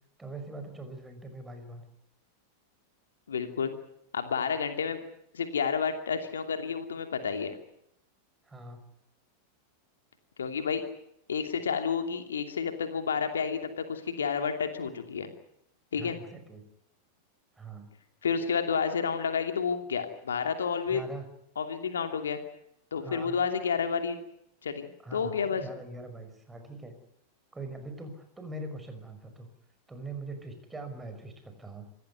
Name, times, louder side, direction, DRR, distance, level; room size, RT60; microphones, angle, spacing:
voice 1, 0.2-1.8 8.4-8.8 15.9-16.6 17.6-17.9 20.9-21.3 23.0-23.3 25.0-26.9 27.5-29.5 29.9-31.9, right 2 dB, 10° right, 7 dB, 5.6 m, -42 dB
voice 2, 3.3-3.7 4.1-5.0 5.3-7.6 10.4-10.8 11.3-15.3 15.9-16.2 18.2-21.0 21.6-22.4 22.9-24.2 24.6-25.6, left 6 dB, 70° left, 7 dB, 2.7 m, -30 dB
27.0 x 15.5 x 9.5 m, 0.75 s
figure-of-eight pair, 90°, 0 cm